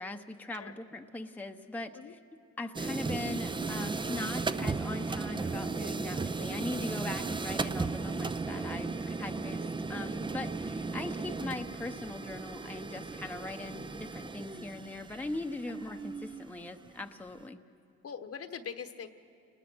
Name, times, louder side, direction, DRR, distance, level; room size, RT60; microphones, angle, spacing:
voice 1, 0.0-2.2 2.6-17.6, left 2 dB, 5° left, 4 dB, 0.9 m, -40 dB
sound 1, 2.7-17.0, right 4 dB, 15° right, 0.6 m, -36 dB
voice 2, 18.0-19.1, left 7 dB, 50° left, 9 dB, 1.2 m, -42 dB
29.5 x 20.0 x 6.2 m, 2.6 s
cardioid pair, 90°, 30 cm